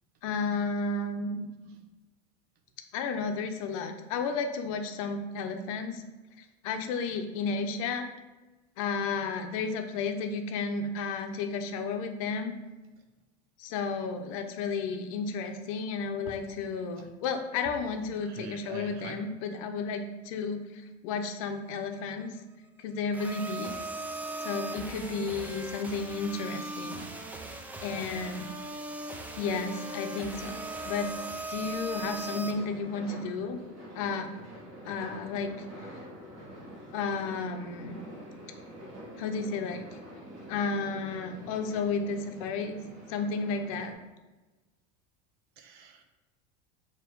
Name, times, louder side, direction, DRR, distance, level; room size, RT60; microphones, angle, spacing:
voice 1, 0.2-1.5 2.9-6.0 6.4-8.1 8.8-12.6 13.6-22.4 22.8-23.7 24.4-27.0 27.8-28.5 29.3-31.1 31.5-33.6 33.9-34.3 34.8-35.5 35.8-35.9 36.9-38.0 39.2-39.8 40.5-42.8 43.1-43.9, left 4 dB, 70° left, 6 dB, 0.7 m, -32 dB
voice 2, 1.4-1.8 13.0-13.1 17.0-17.1 17.9-19.3 31.9-32.1 32.6-32.7 33.0-33.2 45.6-46.0, right 5 dB, 55° right, 6 dB, 0.7 m, -47 dB
sound 1, 23.1-32.5, right 2 dB, 10° right, 0.4 m, -38 dB
sound 2, 32.1-43.9, equal, 40° right, 1.9 m, -46 dB
6.9 x 3.0 x 4.5 m, 1.1 s
cardioid pair, 155°, 18 cm